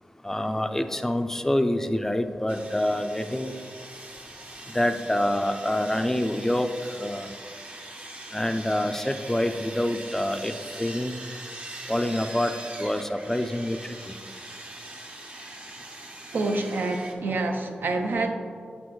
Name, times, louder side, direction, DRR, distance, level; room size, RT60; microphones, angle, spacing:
voice 1, 0.1-3.6 4.0-4.3 4.6-7.4 8.3-11.2 11.9-14.2, left 1 dB, 10° left, 7 dB, 0.3 m, -27 dB
Sawing, 2.5-17.1, right 2 dB, 40° right, 0.8 m, -42 dB
voice 2, 16.3-18.3, right 2 dB, 80° right, 5 dB, 0.6 m, -27 dB
7.6 x 6.1 x 3.1 m, 2.2 s
wide cardioid pair, 100°, 3 cm